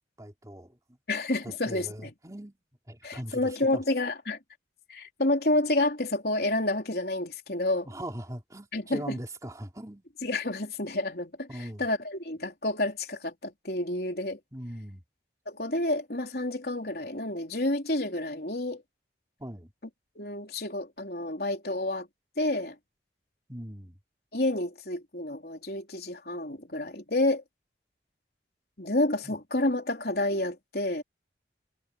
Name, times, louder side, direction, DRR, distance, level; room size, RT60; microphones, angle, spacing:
voice 1, 0.2-0.8 1.4-2.6 2.9-3.8 7.9-10.0 11.5-11.8 14.5-15.0 19.4-19.7 23.5-24.0 29.2-29.3, equal, 20° right, 3.7 m, -40 dB
voice 2, 1.1-2.1 3.0-4.4 4.9-7.9 8.7-9.2 10.2-14.4 15.5-18.8 20.2-22.1 22.4-22.8 24.3-27.4 28.8-31.0, left 2 dB, 60° left, 4.1 m, -29 dB
head